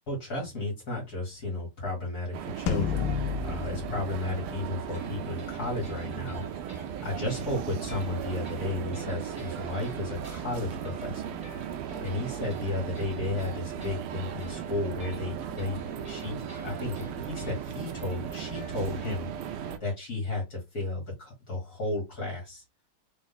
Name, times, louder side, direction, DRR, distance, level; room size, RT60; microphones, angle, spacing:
voice 1, 0.1-3.1 3.4-6.4 7.0-11.2 12.0-15.8 16.1-19.3 19.6-22.6, left 2 dB, 45° left, -2 dB, 1.9 m, -33 dB
sound 1, 2.3-19.8, right 8 dB, 85° right, 1.6 m, -37 dB
sound 2, 2.7-5.2, left 8 dB, 75° left, 1.3 m, -32 dB
sound 3, 4.9-19.2, right 2 dB, 5° right, 1.4 m, -49 dB
4.1 x 2.6 x 3.9 m, 0.22 s
omnidirectional pair, 2.4 m